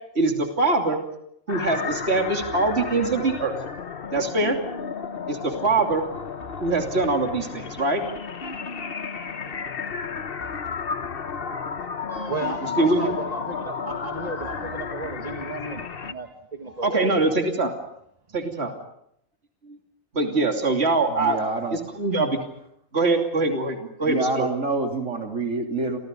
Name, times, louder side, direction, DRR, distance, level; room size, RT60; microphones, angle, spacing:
voice 1, 0.1-1.0 1.5-3.5 4.1-4.6 5.3-6.0 6.6-8.0 12.6-13.1 16.8-17.7 18.3-18.7 19.7-19.8 20.1-21.4 21.7-22.4 22.9-24.5, right 3 dB, 50° right, 2 dB, 3.2 m, -23 dB
sound 1, 1.5-16.1, left 5 dB, 45° left, 1.2 m, -33 dB
voice 2, 12.1-17.5, right 3 dB, 30° right, 5 dB, 1.9 m, -34 dB
voice 3, 21.2-21.8 24.1-26.0, right 3 dB, 70° right, 2 dB, 3.4 m, -27 dB
30.0 x 25.0 x 5.3 m, 0.74 s
omnidirectional pair, 1.4 m